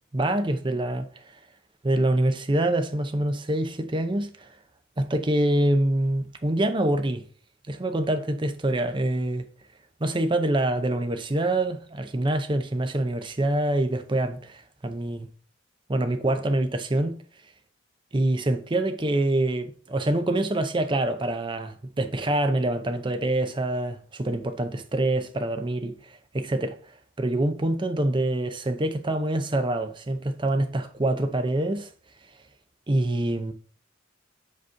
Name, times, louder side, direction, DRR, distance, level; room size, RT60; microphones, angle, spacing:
voice 1, 0.1-1.2 1.8-4.5 5.0-7.2 7.7-9.5 10.0-15.3 15.9-17.2 18.1-26.8 27.2-31.9 32.9-33.5, right 1 dB, 25° right, 0.5 m, -25 dB
5.2 x 4.1 x 5.6 m
head